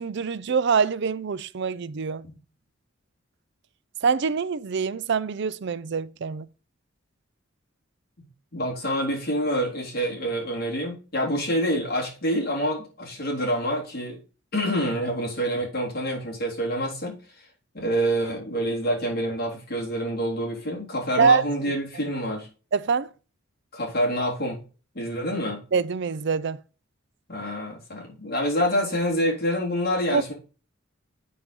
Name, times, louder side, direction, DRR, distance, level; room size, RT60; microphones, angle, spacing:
voice 1, 0.0-2.3 4.0-6.5 21.2-21.7 22.7-23.1 25.7-26.6 30.1-30.2, right 5 dB, 60° right, 0.5 m, -24 dB
voice 2, 8.5-14.2 14.5-17.5 17.7-22.5 23.7-24.6 25.0-25.6 27.3-30.3, equal, 55° left, 3.6 m, -27 dB
8.9 x 4.7 x 5.2 m
head